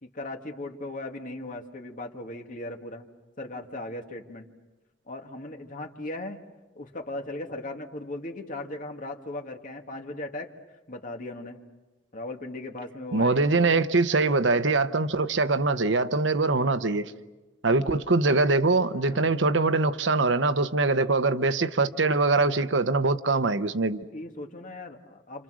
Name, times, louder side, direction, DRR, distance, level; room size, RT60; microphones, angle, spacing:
voice 1, 0.0-3.1 3.4-4.5 5.1-6.4 6.8-10.5 10.9-11.6 12.1-13.4 17.7-18.0 19.0-19.3 24.1-25.4, left 2 dB, 45° left, 2.2 m, -38 dB
voice 2, 13.1-17.1 17.6-24.1, right 3 dB, 80° right, 1.0 m, -23 dB
30.0 x 27.0 x 6.3 m
head